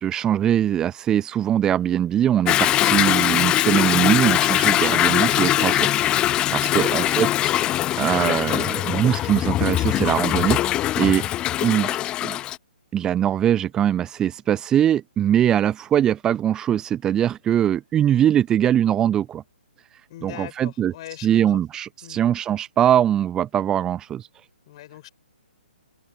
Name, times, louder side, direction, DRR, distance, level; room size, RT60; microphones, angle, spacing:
voice 1, 0.0-7.5 8.0-11.2 11.6-12.4 12.9-19.4 20.2-20.9 21.2-24.3, right 10 dB, 10° right, 0.7 m, -22 dB
Toilet flush / Drip / Trickle dribble, 2.5-12.6, left 13 dB, 15° left, 0.9 m, -21 dB
voice 2, 6.7-7.1 20.1-21.6 22.0-22.2 24.7-25.1, left 15 dB, 35° left, 5.6 m, -40 dB
figure-of-eight pair, 130°, 6 cm